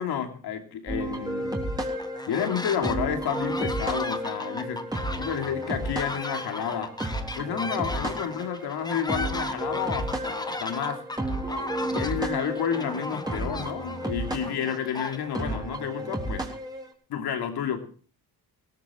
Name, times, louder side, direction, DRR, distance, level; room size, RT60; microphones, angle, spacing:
voice 1, 0.0-1.6 2.3-6.9 7.3-11.0 11.8-16.5 17.1-17.8, left 8 dB, 70° left, 5 dB, 3.1 m, -30 dB
sound 1, 0.9-16.9, right 1 dB, 10° right, 3.8 m, -33 dB
sound 2, 2.0-3.0 3.3-15.6, left 2 dB, 10° left, 1.1 m, -36 dB
18.0 x 14.0 x 4.6 m, 0.42 s
cardioid pair, 130°, 40 cm